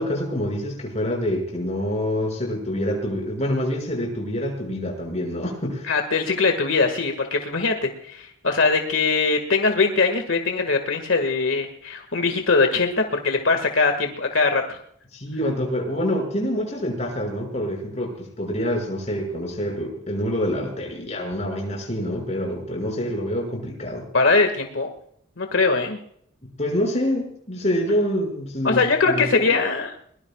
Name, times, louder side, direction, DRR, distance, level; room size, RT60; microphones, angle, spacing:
voice 1, 0.0-5.9 15.1-24.0 26.4-29.6, equal, 35° left, 1 dB, 6.0 m, -26 dB
voice 2, 5.9-14.8 24.1-24.9 25.4-26.0 28.6-30.0, left 4 dB, 85° left, 5 dB, 1.9 m, -21 dB
22.5 x 21.0 x 2.4 m, 0.66 s
head